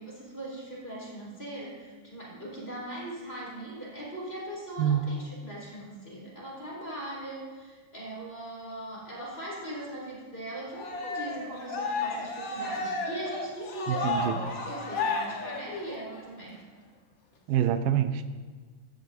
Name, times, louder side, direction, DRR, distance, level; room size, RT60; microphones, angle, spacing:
voice 1, 0.0-16.6, right 1 dB, 15° left, -5 dB, 4.4 m, -40 dB
Cheering, 10.7-16.2, left 3 dB, 55° left, 1.4 m, -33 dB
voice 2, 13.9-14.4 17.5-18.3, right 10 dB, 85° right, 9 dB, 2.4 m, -26 dB
17.0 x 13.5 x 2.7 m, 1.4 s
omnidirectional pair, 3.9 m